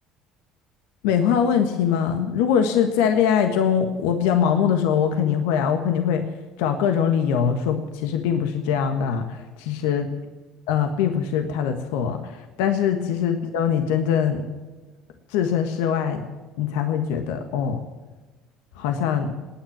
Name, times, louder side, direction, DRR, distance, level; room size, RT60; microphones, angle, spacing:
voice 1, 1.0-6.3 6.6-10.1 10.7-14.5 15.3-16.3 16.6-17.8 18.8-19.3, left 8 dB, 80° left, 6 dB, 1.5 m, -22 dB
20.0 x 9.4 x 7.4 m, 1.2 s
supercardioid pair, 80°, 0 cm